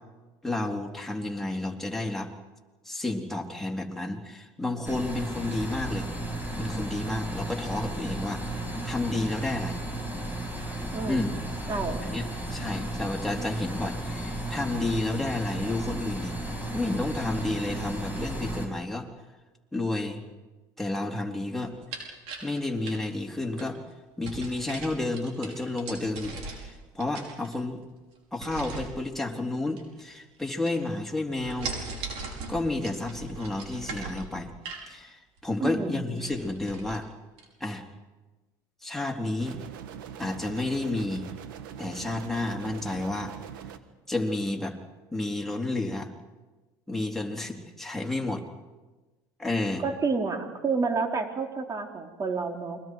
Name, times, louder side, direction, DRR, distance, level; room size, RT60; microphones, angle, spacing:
voice 1, 0.4-2.3 2.9-6.1 6.6-8.4 8.8-9.8 11.1-11.3 12.1-16.4 16.7-19.1 19.7-20.2 20.8-21.7 22.4-23.8 24.2-27.8 28.3-31.7 32.5-34.5 34.9-37.1 37.6-37.8 38.8-39.6 40.2-41.3 41.8-43.3 44.1-44.8 45.1-46.1 46.9-48.4 49.4-49.8, left 2 dB, 5° left, 0 dB, 3.7 m, -31 dB
sound 1, 4.8-18.7, right 1 dB, 15° right, 6.1 m, -34 dB
voice 2, 10.9-11.4 11.7-12.0 35.6-36.1 49.8-52.8, right 4 dB, 30° right, 3 dB, 3.5 m, -29 dB
sound 2, 21.6-23.7 24.2-26.7 27.0-27.8 28.4-29.0 29.7-30.4 30.7-31.1 31.4-34.9 35.4-35.5 35.8-35.9 36.1-37.0 37.4-37.5, right 4 dB, 70° right, 5.6 m, -39 dB
sound 3, 39.4-43.8, right 8 dB, 90° right, 1.4 m, -42 dB
29.5 x 23.5 x 4.8 m, 1.2 s
supercardioid pair, 85°, 11 cm